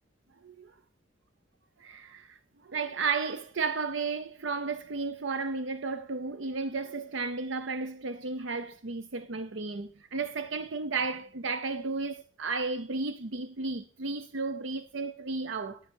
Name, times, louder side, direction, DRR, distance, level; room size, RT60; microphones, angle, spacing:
voice 1, 1.8-15.8, right 4 dB, 75° right, 0.7 m, -33 dB
10.5 x 10.0 x 4.4 m
head